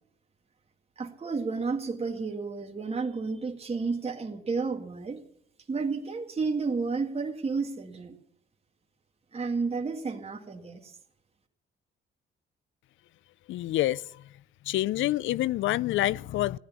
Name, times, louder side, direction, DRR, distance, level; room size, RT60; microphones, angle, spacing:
voice 1, 1.0-5.2 5.7-8.2 9.3-11.0, right 4 dB, 30° right, 2.2 m, -31 dB
voice 2, 13.5-14.3 14.6-16.6, left 15 dB, 75° left, 0.5 m, -27 dB
15.0 x 11.5 x 7.0 m
cardioid pair, 90°, 20 cm